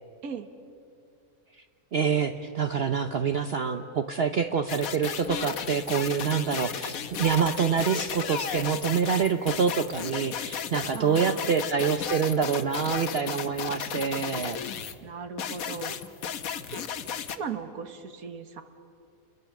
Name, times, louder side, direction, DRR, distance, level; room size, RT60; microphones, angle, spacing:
voice 1, 1.9-14.6, right 6 dB, 50° right, 7 dB, 0.9 m, -26 dB
sound 1, 4.7-15.0 15.4-17.4, left 7 dB, 75° left, 1.4 m, -34 dB
voice 2, 11.0-11.5 15.0-15.9 16.7-16.8 17.3-18.6, right 6 dB, 90° right, 8 dB, 1.8 m, -37 dB
28.5 x 22.0 x 7.2 m, 2.4 s
omnidirectional pair, 1.5 m